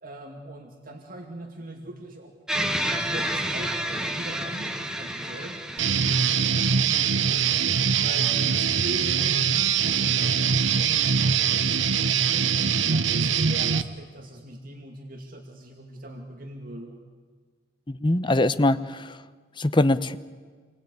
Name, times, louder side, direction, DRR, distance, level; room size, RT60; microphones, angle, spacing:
voice 1, 0.0-5.5 6.0-6.2 6.5-7.7 8.0-12.5 12.9-17.0, right 1 dB, 50° right, 2 dB, 2.4 m, -41 dB
sound 1, 2.5-6.9, right 1 dB, 5° right, 1.7 m, -30 dB
Guitar, 5.8-13.8, right 7 dB, 90° right, 1.0 m, -23 dB
voice 2, 17.9-19.2 19.6-20.2, left 2 dB, 25° left, 13 dB, 0.8 m, -22 dB
27.0 x 21.0 x 9.8 m, 1.5 s
head